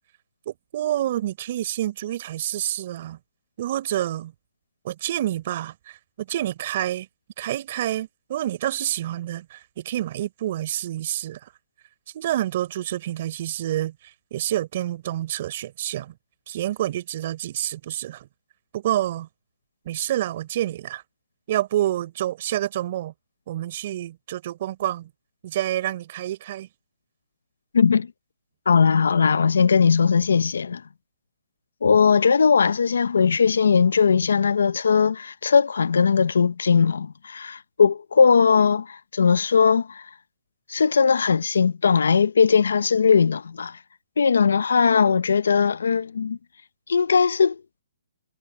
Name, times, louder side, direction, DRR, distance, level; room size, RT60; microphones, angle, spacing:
voice 1, 0.5-3.2 3.6-4.3 4.8-7.1 7.4-11.5 12.1-16.2 16.5-18.3 18.7-19.3 19.8-21.0 21.5-23.1 23.5-25.1 25.4-26.7, right 13 dB, 40° right, 4.2 m, -28 dB
voice 2, 27.7-28.1 28.7-30.8 31.8-40.0 40.7-43.8 44.2-46.4 46.9-47.6, left 6 dB, 80° left, 1.0 m, -19 dB
hypercardioid pair, 160°, 0 cm